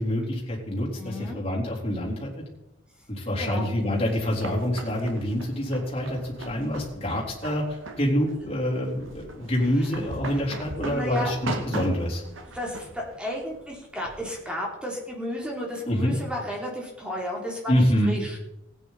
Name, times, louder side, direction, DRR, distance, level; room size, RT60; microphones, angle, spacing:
voice 1, 0.0-2.3 3.1-12.2 15.9-16.2 17.7-18.2, equal, 30° left, -4 dB, 3.7 m, -26 dB
voice 2, 0.9-1.4 3.4-3.6 9.8-9.9 10.3-10.4 10.9-11.3 12.5-18.4, left 1 dB, 5° right, -2 dB, 3.1 m, -33 dB
sound 1, 3.8-14.3, right 2 dB, 85° right, 1.7 m, -39 dB
16.5 x 9.4 x 4.2 m, 0.89 s
head